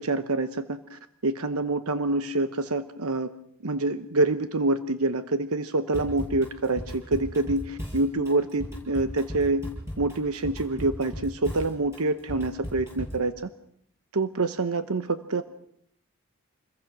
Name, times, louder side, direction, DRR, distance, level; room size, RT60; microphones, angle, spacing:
voice 1, 0.0-3.3 3.6-9.7 10.0-13.4 14.1-15.4, right 2 dB, 80° right, 10 dB, 1.0 m, -26 dB
Drum kit / Drum, 5.9-13.3, equal, 15° right, 7.6 m, -37 dB
28.0 x 21.5 x 6.2 m, 0.70 s
head